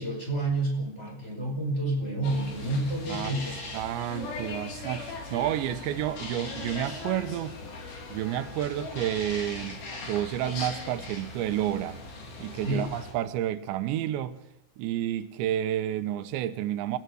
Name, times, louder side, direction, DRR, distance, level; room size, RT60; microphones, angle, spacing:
voice 1, 0.0-3.5 12.6-12.8, right 2 dB, 15° left, 5.5 m, -29 dB
sound 1, 2.2-13.1, left 3 dB, 60° left, 5.6 m, -39 dB
voice 2, 3.7-7.6 8.1-12.0 12.4-14.4 14.8-17.0, right 12 dB, 90° right, 3.3 m, -30 dB
27.5 x 16.5 x 6.4 m
omnidirectional pair, 5.0 m